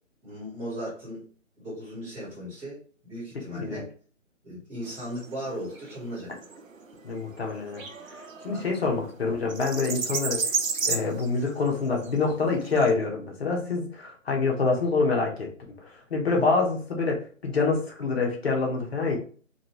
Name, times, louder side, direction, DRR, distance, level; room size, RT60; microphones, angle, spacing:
voice 1, 0.2-1.2 1.6-2.8 3.0-3.9 4.4-6.3 8.5-8.6 16.2-16.5, equal, 5° right, -8 dB, 1.5 m, -37 dB
voice 2, 3.5-3.8 7.0-7.8 8.1-10.5 10.9-15.5 15.8-19.2, left 4 dB, 50° left, 0 dB, 1.3 m, -26 dB
sound 1, 4.8-12.9, right 4 dB, 90° right, 0.7 m, -34 dB
3.9 x 2.6 x 3.1 m, 0.42 s
figure-of-eight pair, 145°, 39 cm